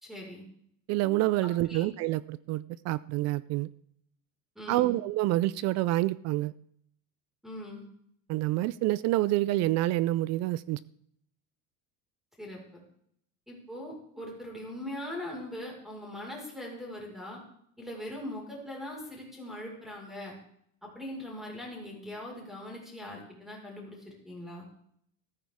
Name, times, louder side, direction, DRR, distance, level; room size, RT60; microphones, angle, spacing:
voice 1, 0.0-0.4 1.4-1.9 4.5-5.0 7.4-7.9 12.4-12.8 13.5-17.4 17.8-20.3 20.8-24.7, left 1 dB, ahead, -2 dB, 4.8 m, -41 dB
voice 2, 0.9-3.7 4.7-6.5 8.3-10.8, right 17 dB, 45° right, 19 dB, 0.4 m, -27 dB
14.5 x 14.0 x 3.6 m, 0.69 s
cardioid pair, 155°, 39 cm